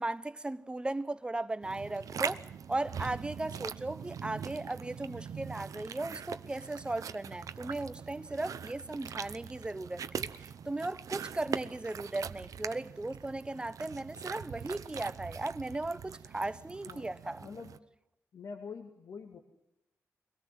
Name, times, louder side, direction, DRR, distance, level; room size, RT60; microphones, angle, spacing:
voice 1, 0.0-17.5, right 2 dB, 15° right, 0.8 m, -37 dB
sound 1, 1.6-17.8, right 7 dB, 90° right, 0.8 m, -42 dB
voice 2, 17.4-17.9 18.3-19.4, left 5 dB, 75° left, 2.2 m, -45 dB
23.0 x 18.0 x 7.6 m
wide cardioid pair, 115°, 6 cm